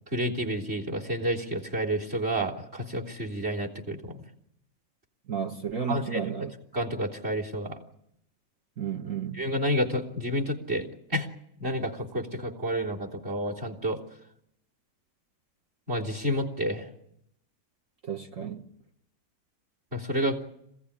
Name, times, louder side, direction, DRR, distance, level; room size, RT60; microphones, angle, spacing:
voice 1, 0.1-4.2 5.9-6.2 6.7-7.8 9.3-11.3 11.6-14.0 15.9-16.9 19.9-20.4, equal, 35° right, 3.6 m, -30 dB
voice 2, 5.3-6.5 8.8-9.4 18.0-18.6, right 7 dB, 55° right, 1.5 m, -32 dB
26.5 x 16.5 x 10.0 m
omnidirectional pair, 1.8 m